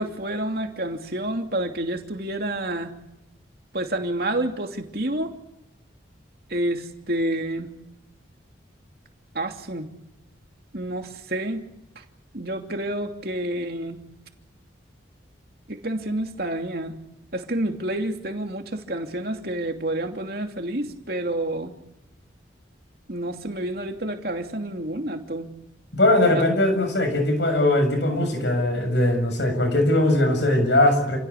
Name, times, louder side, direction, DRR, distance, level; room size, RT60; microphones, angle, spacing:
voice 1, 0.0-2.9 3.7-5.4 6.5-7.7 9.3-9.9 10.7-11.7 12.3-14.0 15.7-17.0 17.3-21.8 23.1-25.5 26.3-26.5, right 1 dB, 55° right, 4 dB, 2.8 m, -29 dB
voice 2, 25.9-31.2, left 1 dB, 70° left, 5 dB, 7.2 m, -20 dB
29.0 x 17.0 x 8.7 m, 0.85 s
head